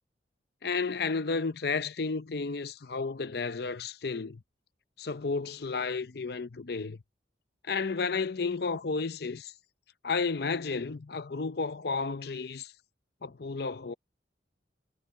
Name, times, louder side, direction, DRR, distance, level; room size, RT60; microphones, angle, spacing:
voice 1, 0.6-4.4 5.0-7.0 7.7-9.5 10.0-12.7 13.2-13.9, left 4 dB, 60° left, 0.7 m, -32 dB
head